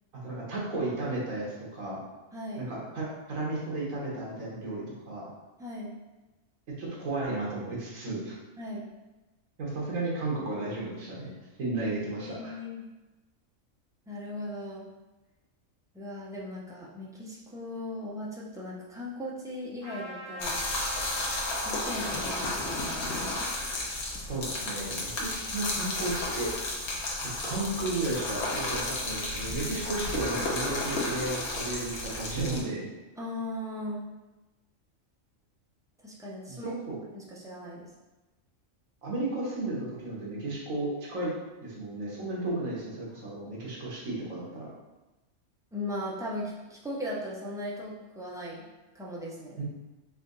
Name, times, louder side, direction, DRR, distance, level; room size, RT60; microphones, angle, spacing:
voice 1, 0.2-2.0 2.6-5.3 6.8-8.3 9.6-11.3 11.6-12.6 24.3-26.5 27.2-32.9 36.5-37.0 39.0-41.3 41.6-44.7 49.6-49.7, right 2 dB, 80° right, -5 dB, 1.6 m, -34 dB
voice 2, 2.3-2.7 5.6-5.9 8.6-8.9 12.2-12.8 14.1-14.9 15.9-20.6 21.6-23.3 33.2-34.0 36.0-36.7 37.1-37.8 45.7-48.6 48.9-49.6, left 1 dB, 5° right, -6 dB, 0.4 m, -38 dB
Trumpet, 19.8-24.8, equal, 45° right, 1.4 m, -45 dB
sound 1, 20.4-32.6, left 2 dB, 60° left, 1.1 m, -33 dB
4.2 x 2.6 x 3.8 m, 1.1 s
omnidirectional pair, 1.4 m